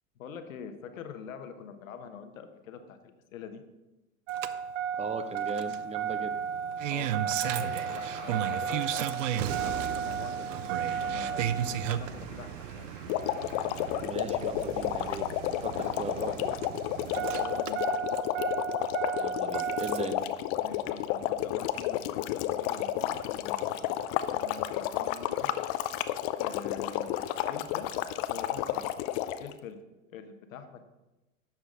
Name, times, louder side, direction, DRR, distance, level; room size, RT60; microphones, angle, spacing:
voice 1, 0.2-3.0 3.3-3.6 6.9-12.9 15.7-15.9 17.1-17.8 20.6-25.5 26.4-27.9 28.3-29.1 29.4-29.8 30.1-30.8, left 7 dB, 70° left, 8 dB, 1.2 m, -45 dB
Engine starting, 4.3-20.2 21.5-21.6, right 8 dB, 65° right, 0.6 m, -33 dB
voice 2, 5.0-6.3 14.0-16.6 19.2-20.2, right 4 dB, 15° right, 10 dB, 0.7 m, -38 dB
Traffic noise roadway noise, 7.5-14.1, right 3 dB, 45° right, 2.0 m, -48 dB
sound 1, 13.1-29.5, left 13 dB, 45° left, 0.6 m, -31 dB
11.0 x 7.4 x 3.8 m, 1.0 s
hypercardioid pair, 85°, 41 cm